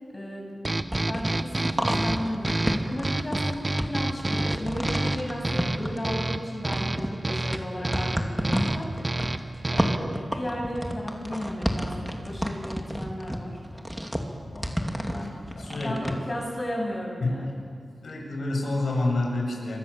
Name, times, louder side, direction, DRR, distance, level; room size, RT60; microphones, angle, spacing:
voice 1, 0.1-0.5 1.0-8.9 9.2-13.6 15.1-15.4 15.7-17.6, left 1 dB, 30° left, -1 dB, 7.6 m, -34 dB
sound 1, 0.6-10.2, right 2 dB, 30° right, 1.2 m, -30 dB
sound 2, 0.8-6.4 6.7-16.1, equal, 5° right, 2.6 m, -31 dB
voice 2, 14.4-15.2 15.6-16.2 17.2-17.5 18.0-19.8, left 2 dB, 75° left, -1 dB, 7.3 m, -29 dB
28.5 x 25.0 x 7.3 m, 2.2 s
wide cardioid pair, 75°, 0 cm